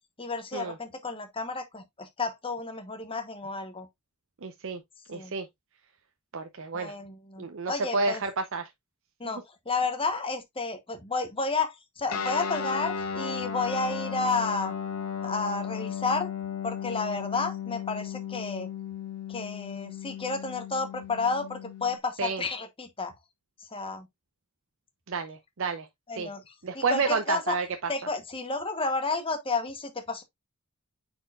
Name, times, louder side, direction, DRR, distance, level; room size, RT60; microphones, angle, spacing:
voice 1, 0.2-3.9 5.1-5.3 6.7-8.2 9.2-14.7 15.2-16.3 16.6-18.7 19.3-23.1 23.7-24.1 26.1-27.6 27.9-30.2, left 3 dB, 25° left, 1.0 m, -31 dB
voice 2, 4.4-4.8 5.1-5.5 6.3-6.9 7.4-8.6 22.2-22.4 25.1-25.9 26.2-26.3 26.6-27.7, right 4 dB, 60° right, 0.7 m, -30 dB
Guitar, 12.1-22.0, left 7 dB, 85° left, 1.4 m, -35 dB
9.0 x 4.4 x 2.4 m
head